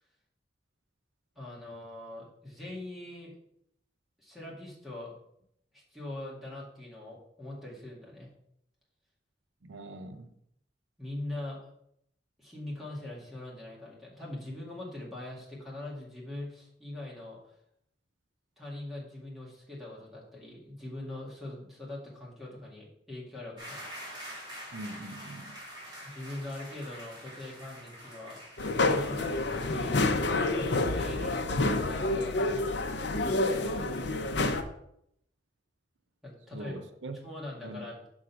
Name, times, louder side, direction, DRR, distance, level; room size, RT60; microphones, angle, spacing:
voice 1, 1.4-3.3 4.2-5.1 5.7-8.3 11.0-11.6 12.4-17.5 18.6-23.8 26.0-28.4 28.7-30.1 30.4-31.5 31.7-34.4 36.2-36.8 37.2-38.1, left 1 dB, ahead, 2.1 m, -42 dB
voice 2, 9.6-10.3 24.7-25.5 36.5-37.2 37.6-37.8, right 2 dB, 85° right, 0.6 m, -42 dB
sound 1, 23.6-29.7, equal, 25° right, 2.8 m, -46 dB
sound 2, 28.6-34.6, left 2 dB, 70° left, 0.7 m, -28 dB
6.3 x 3.9 x 5.9 m
head